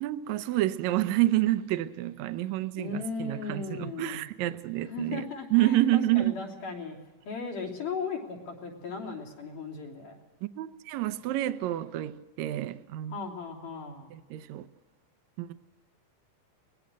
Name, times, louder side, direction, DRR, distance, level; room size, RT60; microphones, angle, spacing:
voice 1, 0.0-6.3 10.6-13.2 14.1-14.7 15.4-15.5, right 15 dB, 75° right, 2.0 m, -28 dB
voice 2, 2.7-4.2 4.9-7.0 7.2-10.2 13.1-14.1, left 4 dB, 85° left, 4.9 m, -37 dB
23.0 x 19.5 x 6.3 m
omnidirectional pair, 3.6 m